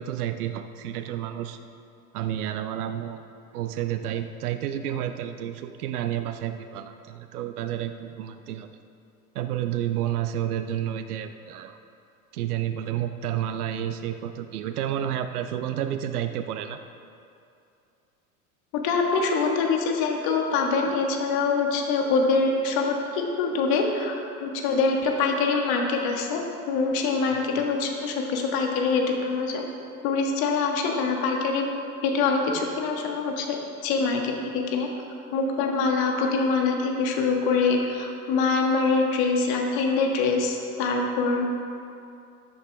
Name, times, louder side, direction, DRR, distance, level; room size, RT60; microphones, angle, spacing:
voice 1, 0.0-1.6 2.1-3.2 3.5-8.7 9.3-11.8 12.3-16.8, right 11 dB, 75° right, 9 dB, 0.6 m, -30 dB
voice 2, 18.8-26.4 26.7-29.6 30.0-31.7 32.0-33.6 33.8-34.9 35.3-41.5, left 4 dB, 50° left, 2 dB, 1.8 m, -24 dB
13.0 x 8.7 x 3.5 m, 2.5 s
hypercardioid pair, 80°, 45 cm